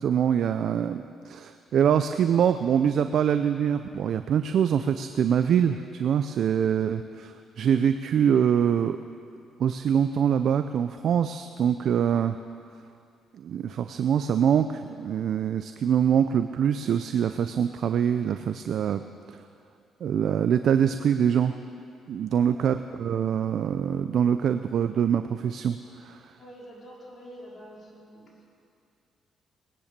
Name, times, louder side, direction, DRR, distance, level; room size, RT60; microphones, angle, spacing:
voice 1, 0.0-9.0 9.6-12.4 13.3-19.0 20.0-21.5 22.1-26.2, right 8 dB, 65° right, 9 dB, 0.5 m, -24 dB
voice 2, 26.4-28.5, equal, 40° left, -4 dB, 4.8 m, -47 dB
19.5 x 10.5 x 6.7 m, 2.5 s
cardioid pair, 90°, 0 cm